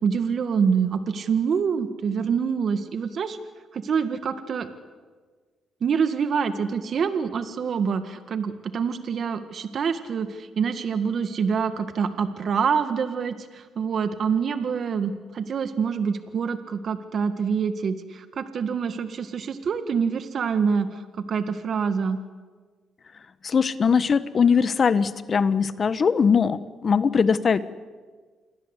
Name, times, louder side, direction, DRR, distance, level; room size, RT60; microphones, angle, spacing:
voice 1, 0.0-3.4 3.7-4.7 5.8-22.2, right 6 dB, 55° right, 9 dB, 1.8 m, -26 dB
voice 2, 23.4-27.6, left 6 dB, 45° left, 14 dB, 1.2 m, -21 dB
28.5 x 22.5 x 8.3 m, 1.5 s
cardioid pair, 90°, 0 cm